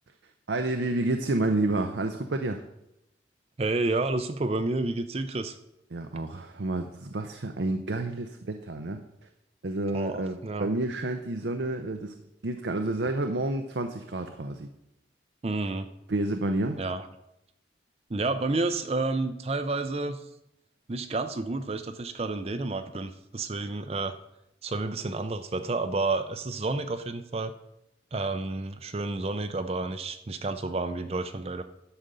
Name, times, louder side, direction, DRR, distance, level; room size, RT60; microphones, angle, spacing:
voice 1, 0.5-2.6 5.9-9.0 9.6-12.2 12.4-14.7 16.1-16.8, right 2 dB, 75° right, 6 dB, 0.7 m, -29 dB
voice 2, 3.6-5.6 9.9-10.7 15.4-15.9 16.8-17.1 18.1-20.2 20.9-24.1 24.6-27.5 28.1-31.6, right 2 dB, 35° right, 9 dB, 0.5 m, -30 dB
11.5 x 5.1 x 6.8 m, 0.83 s
head